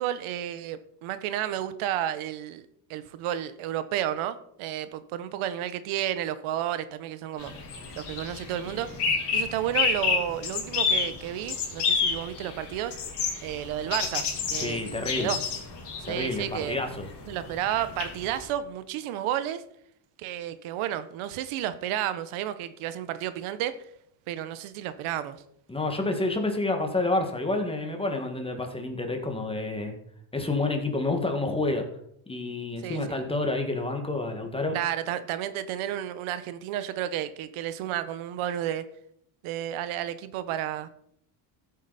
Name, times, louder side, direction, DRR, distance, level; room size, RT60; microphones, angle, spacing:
voice 1, 0.0-7.5 8.0-8.9 9.3-13.0 13.4-14.2 14.5-15.4 16.1-16.8 17.3-19.6 20.2-23.8 24.3-25.4 32.8-33.2 34.7-38.8 39.4-40.9, right 11 dB, 85° right, 12 dB, 1.1 m, -32 dB
sound 1, 7.4-18.5, left 5 dB, 55° left, 3.6 m, -30 dB
voice 2, 14.6-15.3 16.0-17.0 25.7-30.0 30.3-31.9 32.3-34.8, left 2 dB, 10° left, 4 dB, 1.8 m, -29 dB
14.0 x 8.1 x 4.2 m, 0.70 s
cardioid pair, 150°, 48 cm